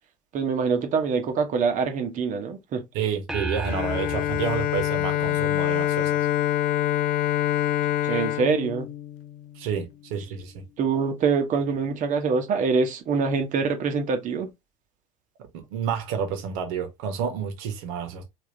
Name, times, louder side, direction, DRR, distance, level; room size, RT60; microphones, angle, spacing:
voice 1, 0.3-2.8 8.0-8.9 10.8-14.5, right 5 dB, 45° right, 1.0 m, -24 dB
voice 2, 2.9-6.1 9.6-10.6 15.5-18.2, right 7 dB, 60° right, 1.2 m, -30 dB
sound 1, 3.3-5.9, right 3 dB, ahead, 0.5 m, -35 dB
Bowed string instrument, 3.6-9.7, left 12 dB, 55° left, 0.5 m, -25 dB
3.5 x 2.8 x 2.7 m
figure-of-eight pair, 70°, 19 cm